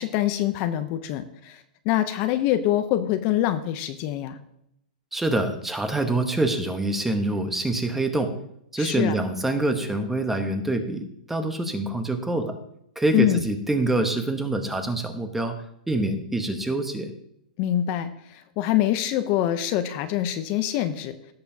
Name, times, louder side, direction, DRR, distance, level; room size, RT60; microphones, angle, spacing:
voice 1, 0.0-4.4 8.8-9.2 13.1-13.4 17.6-21.2, left 13 dB, 40° left, 9 dB, 0.6 m, -25 dB
voice 2, 5.1-8.3 8.7-12.5 13.0-15.5 15.9-17.1, right 2 dB, 5° right, 7 dB, 0.9 m, -25 dB
16.5 x 6.7 x 2.8 m, 0.76 s
hypercardioid pair, 150°, 5 cm